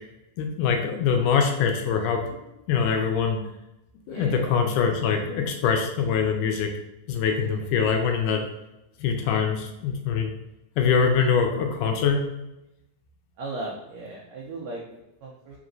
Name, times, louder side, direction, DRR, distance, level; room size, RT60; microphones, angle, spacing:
voice 1, 0.4-2.2 2.7-3.4 4.1-6.7 7.1-8.4 9.0-10.3 10.8-12.2, left 6 dB, 90° left, 3 dB, 2.1 m, -23 dB
voice 2, 4.1-4.5 13.4-15.6, right 2 dB, 80° right, -2 dB, 1.6 m, -37 dB
5.0 x 3.0 x 2.5 m, 0.90 s
omnidirectional pair, 3.6 m